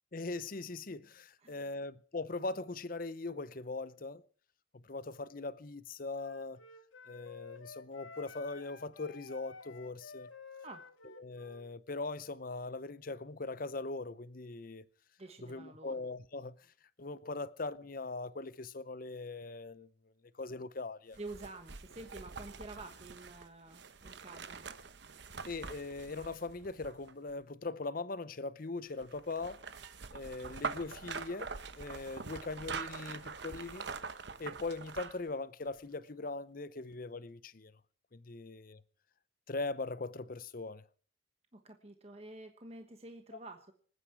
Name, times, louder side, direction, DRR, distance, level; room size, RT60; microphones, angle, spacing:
voice 1, 0.1-4.2 4.7-6.6 7.1-10.3 11.2-14.8 15.4-16.6 17.0-19.9 20.4-21.2 25.5-29.6 30.1-31.5 31.7-33.9 34.4-37.8 38.1-38.8 39.5-40.9, left 3 dB, 45° left, 0.7 m, -40 dB
voice 2, 1.4-1.8 10.6-10.9 15.2-16.0 21.2-24.6 41.5-43.7, right 2 dB, 30° right, 1.3 m, -49 dB
Wind instrument woodwind instrument, 6.2-11.7, left 5 dB, 80° left, 1.8 m, -52 dB
sound 1, 21.1-27.3 29.0-35.3 35.7-35.8, right 4 dB, 60° right, 1.0 m, -44 dB
26.0 x 9.7 x 4.7 m
head